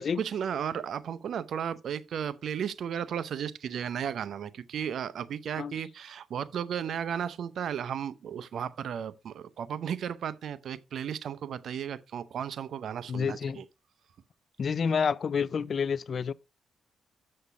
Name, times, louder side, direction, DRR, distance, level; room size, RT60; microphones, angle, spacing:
voice 1, 0.0-13.7, right 8 dB, 70° right, 0.7 m, -34 dB
voice 2, 13.1-13.6 14.6-16.3, left 6 dB, 55° left, 0.4 m, -29 dB
6.9 x 6.6 x 5.1 m
cardioid pair, 80°, 0 cm